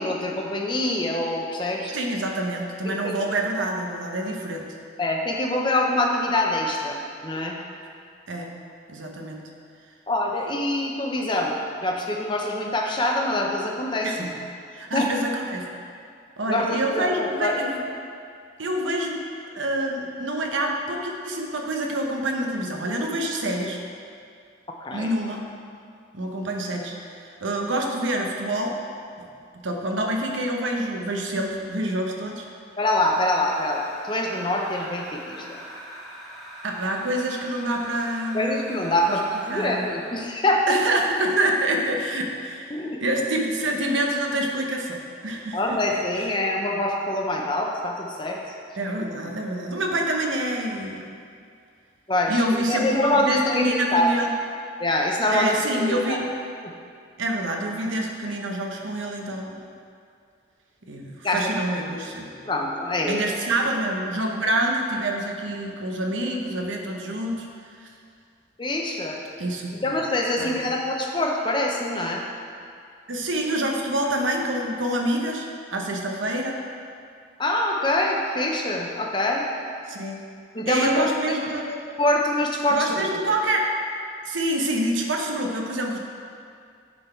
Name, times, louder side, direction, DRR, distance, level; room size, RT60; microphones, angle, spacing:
voice 1, 0.0-1.9 2.8-3.2 5.0-7.6 10.1-11.5 11.8-14.4 14.9-15.1 16.5-17.6 24.8-25.1 32.8-35.6 38.3-40.7 42.7-43.0 45.5-48.4 52.1-54.1 54.8-56.2 56.6-56.7 61.2-61.5 62.4-63.2 68.6-69.2 69.7-72.2 77.4-79.5 80.5-81.4 82.0-83.4, left 1 dB, 25° left, 0 dB, 0.7 m, -25 dB
voice 2, 1.9-4.7 8.3-8.5 8.9-9.4 14.0-14.3 14.7-15.6 16.4-17.8 18.6-19.2 19.5-23.8 24.9-25.4 26.1-28.8 29.6-32.5 36.6-38.8 39.5-39.9 40.7-42.7 43.0-45.8 48.8-51.0 52.3-54.3 55.3-56.3 57.2-59.6 60.9-62.3 63.0-67.5 67.8-67.9 69.4-69.9 70.4-70.6 73.1-76.6 79.9-80.2 80.6-81.8 82.7-83.7 84.2-86.0, right 1 dB, 90° right, 1 dB, 0.9 m, -27 dB
sound 1, 32.8-40.5, right 1 dB, ahead, 1.0 m, -42 dB
10.0 x 4.0 x 4.4 m, 2.3 s
head